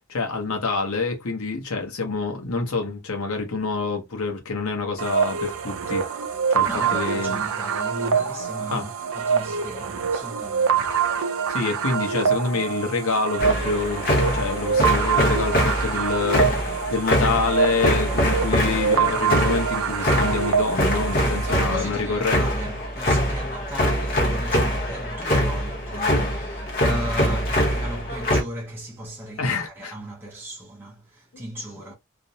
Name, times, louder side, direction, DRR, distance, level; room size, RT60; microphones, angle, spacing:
voice 1, 0.1-6.1 6.5-7.4 8.7-8.9 11.5-16.5 16.9-22.4 29.4-29.9 31.3-31.4, left 4 dB, 85° left, 0.8 m, -27 dB
sound 1, 5.0-21.5, right 6 dB, 75° right, 0.4 m, -25 dB
voice 2, 6.5-11.0 21.1-31.9, equal, 10° right, 0.5 m, -36 dB
sound 2, 13.4-28.4, equal, 45° left, 0.9 m, -24 dB
2.5 x 2.0 x 2.7 m
head